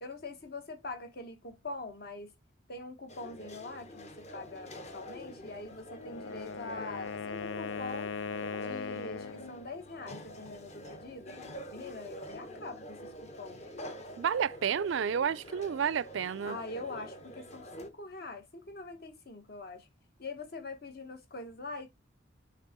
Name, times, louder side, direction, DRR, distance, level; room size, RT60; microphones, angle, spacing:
voice 1, 0.0-2.3 2.7-8.1 8.6-11.3 11.7-13.6 16.5-19.9 20.2-21.9, left 2 dB, 55° left, 1.4 m, -43 dB
sound 1, 3.1-17.9, equal, 35° left, 1.1 m, -47 dB
Wind instrument woodwind instrument, 5.9-9.5, left 5 dB, 75° left, 0.5 m, -39 dB
voice 2, 14.2-16.6, right 7 dB, 75° right, 0.4 m, -30 dB
6.7 x 3.4 x 4.3 m
head